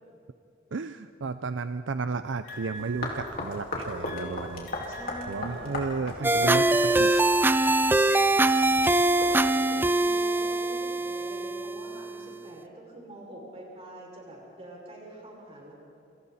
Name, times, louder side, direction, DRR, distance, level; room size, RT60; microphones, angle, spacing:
voice 1, 0.7-4.7 5.3-7.1 7.4-7.8, right 4 dB, 70° right, 11 dB, 0.6 m, -33 dB
sound 1, 2.4-3.6 4.0-6.3 6.9-8.4, left 1 dB, 75° left, 5.1 m, -44 dB
sound 2, 2.7-9.3, left 2 dB, 50° left, 4.2 m, -38 dB
voice 2, 4.8-5.7 6.1-6.5 9.0-15.7, right 1 dB, 30° right, -2 dB, 6.1 m, -45 dB
sound 3, 6.2-12.2, right 2 dB, 10° right, 0.5 m, -23 dB
28.5 x 26.5 x 4.2 m, 2.7 s
head